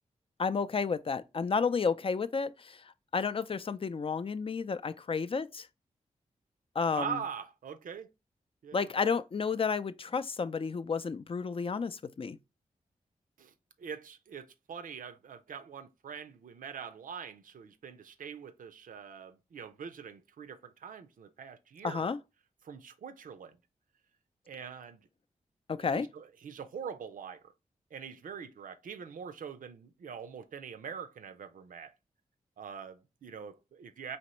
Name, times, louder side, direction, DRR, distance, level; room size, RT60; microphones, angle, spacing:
voice 1, 0.4-2.8 3.1-5.7 6.8-7.2 8.7-12.4 21.8-22.2 25.7-26.1, left 5 dB, 40° left, 0.4 m, -31 dB
voice 2, 6.9-8.1 8.6-8.9 13.4-22.1 22.6-23.6 24.5-25.0 25.8-27.5 27.9-31.9 32.6-34.2, right 7 dB, 75° right, 0.6 m, -43 dB
4.3 x 2.9 x 3.0 m
cardioid pair, 40°, 14 cm